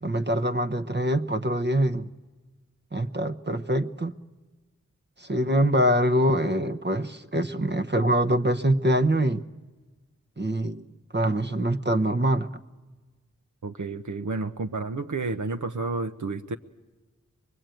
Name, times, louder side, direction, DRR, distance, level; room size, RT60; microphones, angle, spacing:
voice 1, 0.0-2.1 2.9-4.1 5.2-9.4 10.4-10.8 11.1-12.5, right 1 dB, 35° right, 0.9 m, -24 dB
voice 2, 13.6-16.6, right 3 dB, 70° right, 0.8 m, -31 dB
24.0 x 21.5 x 9.1 m
wide cardioid pair, 60°, 31 cm